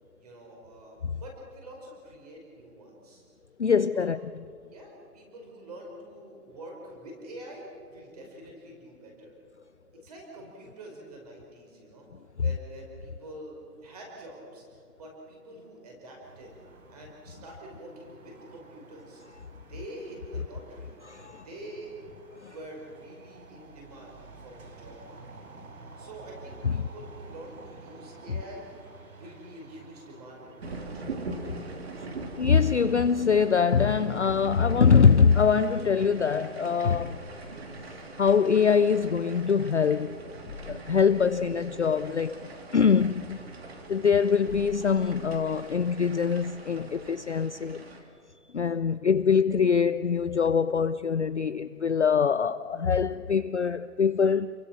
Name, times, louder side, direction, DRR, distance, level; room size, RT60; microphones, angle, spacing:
voice 1, 0.2-3.2 3.7-4.2 4.7-9.4 9.9-12.1 12.4-16.6 16.9-19.2 19.7-21.0 21.4-22.0 22.5-25.4 26.0-28.7 29.2-31.2, right 1 dB, 25° right, 5.3 m, -46 dB
voice 2, 3.6-4.2 21.1-21.4 22.4-22.5 26.6-26.9 32.4-37.2 38.2-40.3 40.7-42.4 42.7-43.4 43.9-47.9 48.5-54.5, left 6 dB, 50° left, 0.5 m, -23 dB
sound 1, 16.2-32.9, right 3 dB, 65° right, 4.1 m, -51 dB
sound 2, 30.6-48.0, right 2 dB, 40° right, 3.1 m, -42 dB
sound 3, 37.2-46.8, left 5 dB, 80° left, 2.6 m, -50 dB
29.0 x 23.0 x 6.0 m
hypercardioid pair, 175°, 47 cm